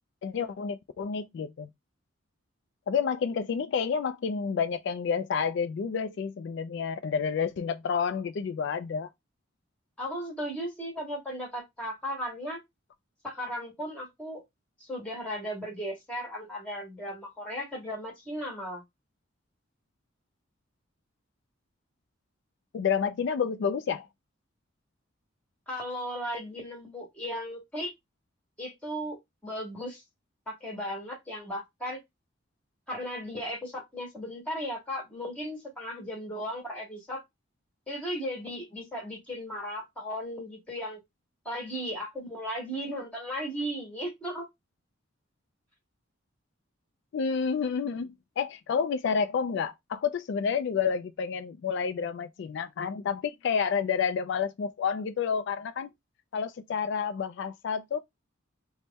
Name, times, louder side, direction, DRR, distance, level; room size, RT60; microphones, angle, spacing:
voice 1, 0.2-1.7 2.9-9.1 22.7-24.1 47.1-55.9 56.3-58.0, left 6 dB, 60° left, 0.3 m, -29 dB
voice 2, 10.0-12.6 13.2-14.4 14.8-18.8 25.7-27.9 28.6-29.2 29.4-30.0 30.5-32.0 32.9-37.2 37.9-41.0 41.5-44.5, equal, 5° left, 1.7 m, -36 dB
3.4 x 2.1 x 4.0 m
head